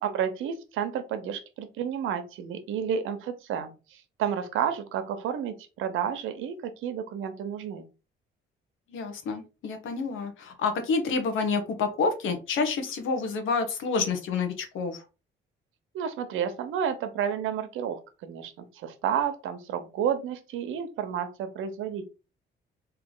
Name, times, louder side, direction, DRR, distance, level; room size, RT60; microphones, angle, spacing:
voice 1, 0.0-7.9 15.9-22.1, right 8 dB, 85° right, 0.8 m, -31 dB
voice 2, 8.9-15.0, left 4 dB, 80° left, 1.1 m, -28 dB
3.3 x 2.8 x 3.8 m
cardioid pair, 90°, 20 cm